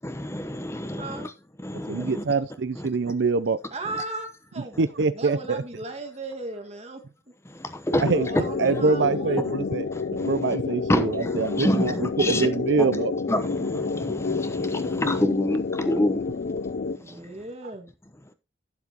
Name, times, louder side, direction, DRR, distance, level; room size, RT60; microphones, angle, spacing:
voice 1, 0.0-1.3 1.6-2.2 2.8-2.9 7.5-8.1 8.6-8.7 9.9-10.6 10.9-12.5 13.3-16.3 17.0-17.3, left 1 dB, 15° left, 0.9 m, -28 dB
voice 2, 1.9-3.6 4.8-5.6 8.0-8.3 8.6-9.9 10.2-13.1, right 4 dB, 75° right, 0.5 m, -24 dB
voice 3, 3.7-4.7 5.1-7.0 8.1-9.5 16.9-17.9, right 2 dB, 35° right, 1.8 m, -36 dB
sound 1, 7.9-17.0, left 4 dB, 55° left, 0.4 m, -29 dB
12.0 x 7.3 x 2.9 m
head